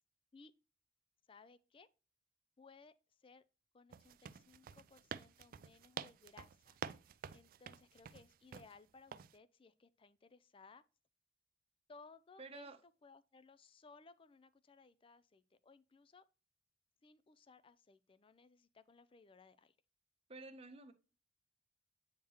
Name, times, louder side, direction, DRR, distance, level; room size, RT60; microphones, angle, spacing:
voice 1, 1.3-1.9 2.6-2.9 3.2-3.4 3.7-7.0 7.3-10.8 11.9-16.2 17.0-19.8, left 4 dB, 30° left, 0.4 m, -62 dB
sound 1, 3.9-8.7 9.1-9.4, right 7 dB, 55° right, 0.3 m, -49 dB
voice 2, 12.4-12.8 20.3-20.9, right 3 dB, 35° right, 0.8 m, -51 dB
8.6 x 3.7 x 2.9 m
head